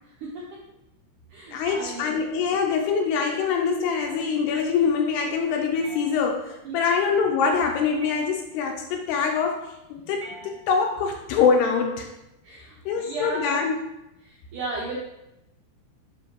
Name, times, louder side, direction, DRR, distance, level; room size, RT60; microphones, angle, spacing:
voice 1, 0.2-0.6 1.3-2.2 6.6-7.0 12.4-13.6 14.2-15.0, right 2 dB, 75° right, -5 dB, 1.9 m, -35 dB
voice 2, 1.5-12.1 12.9-13.8, left 5 dB, 80° left, 3 dB, 2.5 m, -24 dB
sound 1, 1.6-2.5 4.0-4.5 5.8-6.7 8.0-8.7 10.2-11.1, right 2 dB, 20° right, 1.5 m, -45 dB
7.7 x 6.2 x 3.1 m, 0.89 s
omnidirectional pair, 5.1 m